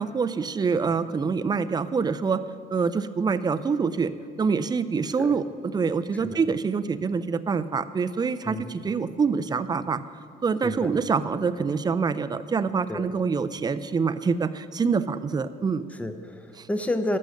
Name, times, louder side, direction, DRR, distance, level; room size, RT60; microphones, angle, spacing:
voice 1, 0.0-2.4 2.7-4.1 4.4-10.0 10.4-15.8 16.6-16.7, right 5 dB, 25° right, 12 dB, 0.4 m, -26 dB
voice 2, 16.0-17.2, left 1 dB, 10° left, 8 dB, 0.8 m, -30 dB
14.0 x 6.4 x 6.5 m, 2.3 s
cardioid pair, 110°, 17 cm